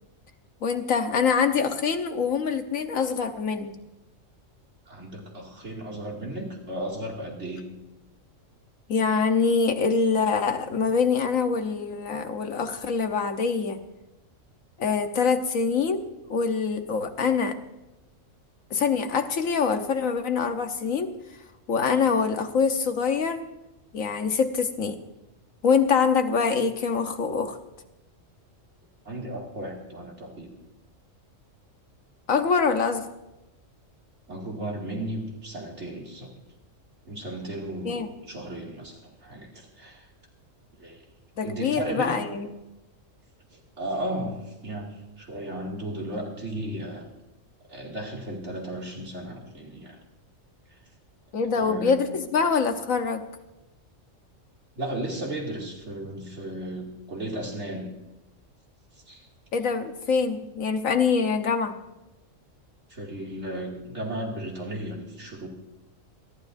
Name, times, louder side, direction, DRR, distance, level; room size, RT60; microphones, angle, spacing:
voice 1, 0.6-3.7 8.9-13.8 14.8-16.0 16.3-17.6 18.7-21.1 21.7-23.5 23.9-25.0 25.6-27.6 32.3-33.1 37.8-38.1 41.4-42.5 51.3-53.2 59.5-61.8, left 5 dB, 85° left, 6 dB, 1.5 m, -24 dB
voice 2, 4.9-7.7 29.0-30.5 34.3-36.3 37.1-40.1 40.8-41.0 41.4-42.3 43.8-47.1 47.7-50.0 51.6-52.0 54.8-57.9 59.1-59.3 62.9-65.5, right 1 dB, 60° right, -2 dB, 2.8 m, -35 dB
28.0 x 12.0 x 2.7 m, 0.95 s
omnidirectional pair, 1.4 m